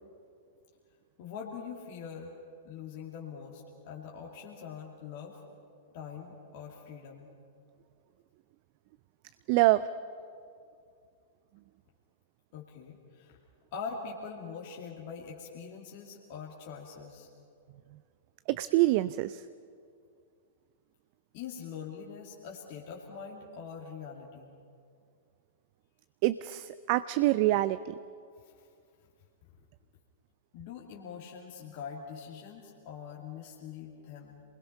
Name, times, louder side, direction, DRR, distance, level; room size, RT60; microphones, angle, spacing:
voice 1, 1.2-2.3 2.6-5.4 5.9-7.3 12.5-13.4 13.7-17.3 21.3-24.5 28.4-28.5 30.5-34.4, left 6 dB, 50° left, -2 dB, 2.7 m, -43 dB
voice 2, 9.5-9.9 18.5-19.4 26.2-28.0, right 17 dB, 45° right, 15 dB, 0.5 m, -26 dB
27.5 x 21.0 x 5.7 m, 2.3 s
figure-of-eight pair, 100°, 0 cm